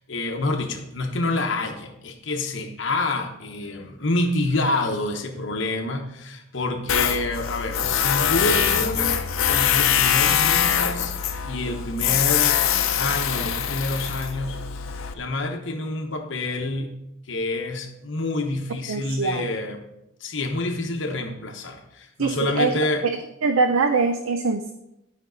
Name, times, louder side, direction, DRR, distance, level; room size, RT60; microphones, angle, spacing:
voice 1, 0.0-9.2 9.5-11.1 11.4-12.7 13.0-16.9 17.3-19.8 20.2-23.0, left 2 dB, 65° left, 4 dB, 1.0 m, -27 dB
Tools, 6.9-15.1, left 9 dB, 85° left, 0.7 m, -23 dB
sound 1, 7.8-10.3, right 1 dB, 45° right, 1.2 m, -39 dB
voice 2, 18.9-19.5 22.2-22.7 23.4-24.7, right 4 dB, 90° right, 7 dB, 0.5 m, -22 dB
11.0 x 5.2 x 3.9 m, 0.85 s
head